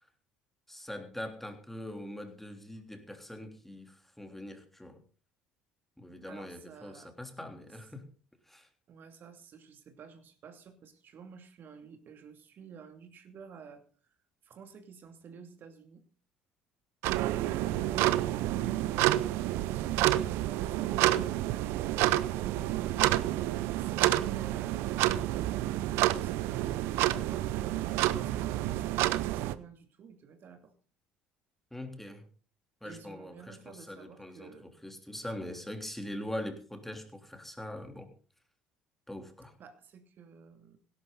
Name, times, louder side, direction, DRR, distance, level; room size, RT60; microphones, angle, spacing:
voice 1, 0.7-5.0 6.0-8.0 8.5-8.7 17.7-17.8 31.7-32.3 32.8-38.1 39.1-39.5, left 1 dB, 5° left, 5 dB, 3.4 m, -42 dB
voice 2, 6.3-7.1 8.9-13.8 14.4-16.0 17.5-23.0 23.7-30.7 32.8-34.7 39.6-40.8, right 6 dB, 50° right, 7 dB, 2.6 m, -51 dB
sound 1, 17.0-29.5, right 15 dB, 70° right, 0.7 m, -29 dB
17.0 x 11.5 x 4.0 m, 0.39 s
hypercardioid pair, 60°, 4 cm